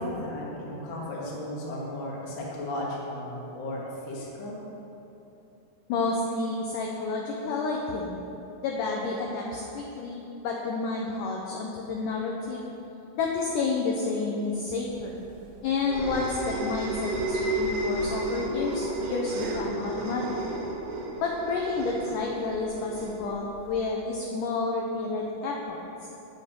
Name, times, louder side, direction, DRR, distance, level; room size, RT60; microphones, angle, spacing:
voice 1, 0.0-4.6, left 1 dB, 45° left, -5 dB, 1.6 m, -35 dB
voice 2, 5.9-8.2 8.6-12.7 13.1-15.2 15.6-20.4 21.2-26.1, left 3 dB, 80° left, -1 dB, 1.9 m, -30 dB
sound 1, 15.0-23.8, right 2 dB, 80° right, 3.0 m, -32 dB
9.4 x 8.0 x 5.2 m, 3.0 s
omnidirectional pair, 4.7 m